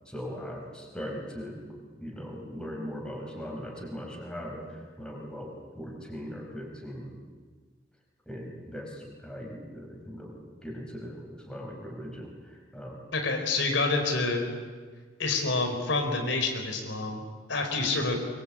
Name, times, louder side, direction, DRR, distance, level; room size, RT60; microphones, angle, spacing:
voice 1, 0.1-1.6 2.0-7.1 8.3-12.3 12.7-13.0, equal, 5° left, 0 dB, 5.0 m, -39 dB
voice 2, 13.1-14.5 15.2-17.2 17.5-18.2, left 3 dB, 85° left, 4 dB, 4.5 m, -27 dB
23.5 x 23.0 x 8.7 m, 1.5 s
head